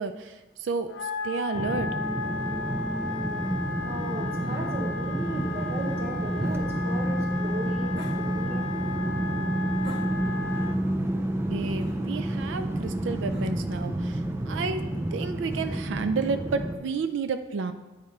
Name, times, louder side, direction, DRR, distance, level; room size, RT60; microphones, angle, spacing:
voice 1, 0.0-1.9 11.5-14.8 15.1-17.7, right 4 dB, 85° right, 9 dB, 0.4 m, -31 dB
Wind instrument woodwind instrument, 0.9-10.8, left 4 dB, 85° left, 0.5 m, -35 dB
sound 1, 1.5-16.8, right 1 dB, 15° right, 0.4 m, -29 dB
voice 2, 3.8-8.7, right 1 dB, 30° right, 0 dB, 1.1 m, -36 dB
sound 2, 4.4-4.7 6.4-6.6 7.9-8.2 9.8-10.4 11.8-12.0 13.3-13.5, equal, 65° right, 1.2 m, -43 dB
8.6 x 3.6 x 4.2 m, 1.2 s
head